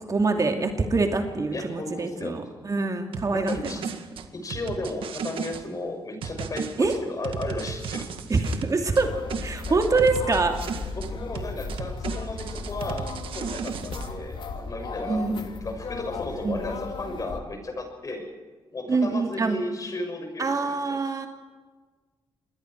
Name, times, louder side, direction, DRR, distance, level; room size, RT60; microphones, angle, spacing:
voice 1, 0.1-3.8 6.8-6.9 8.3-9.1 9.4-10.6 15.1-15.5 16.4-16.7 18.9-19.6 20.4-21.3, right 3 dB, 40° right, 4 dB, 2.7 m, -25 dB
voice 2, 1.5-2.4 3.3-3.8 4.3-8.1 9.6-9.8 10.9-18.3 18.7-21.0, left 2 dB, 40° left, 4 dB, 6.6 m, -34 dB
sound 1, 3.1-5.6 6.2-9.0 9.3-11.1 11.3-14.1, right 6 dB, 80° right, 1.9 m, -35 dB
sound 2, 9.0-17.4, left 4 dB, 65° left, 2.6 m, -36 dB
27.5 x 21.5 x 4.7 m, 1.4 s
cardioid pair, 90°, 9 cm